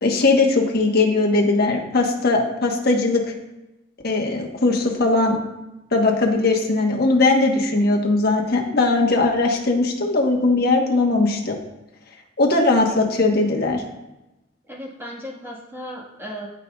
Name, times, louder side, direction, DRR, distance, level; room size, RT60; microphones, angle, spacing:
voice 1, 0.0-3.2 4.0-5.4 5.9-11.6 12.4-13.8, left 3 dB, 55° left, 0 dB, 1.2 m, -19 dB
voice 2, 14.7-16.5, equal, 10° right, -4 dB, 1.6 m, -35 dB
13.0 x 5.2 x 2.4 m, 0.98 s
head